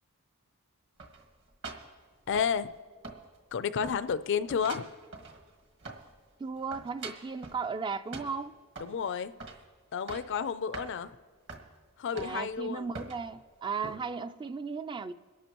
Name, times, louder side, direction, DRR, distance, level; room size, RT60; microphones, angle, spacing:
sound 1, 1.0-2.8 3.0-3.6 3.8-6.2 6.5-7.6 8.1-9.0 9.4-9.7 9.9-10.4 10.7-10.9 11.5-11.7 12.2-12.6 12.9-13.3 13.8-14.0, right 3 dB, 55° right, 1.6 m, -44 dB
voice 1, 2.3-2.7 3.5-4.9 8.8-9.3 9.9-11.2 12.0-12.9, left 6 dB, 55° left, 0.4 m, -31 dB
voice 2, 6.4-8.6 12.1-15.1, right 5 dB, 20° right, 0.3 m, -36 dB
23.0 x 12.0 x 3.0 m
head